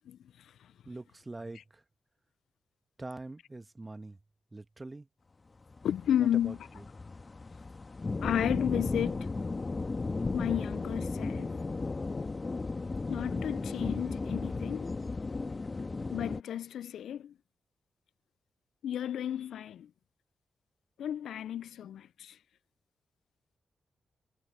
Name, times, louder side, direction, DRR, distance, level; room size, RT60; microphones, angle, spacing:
voice 1, 0.8-1.8 3.0-4.2 4.5-5.1 6.2-6.8, right 2 dB, 30° right, 1.3 m, -44 dB
sound 1, 5.7-16.4, left 3 dB, 40° left, 1.7 m, -35 dB
voice 2, 5.8-6.6 8.2-9.3 10.3-11.6 13.1-14.9 16.1-17.3 18.8-19.9 21.0-22.4, left 10 dB, 80° left, 0.3 m, -33 dB
supercardioid pair, 45°, 0 cm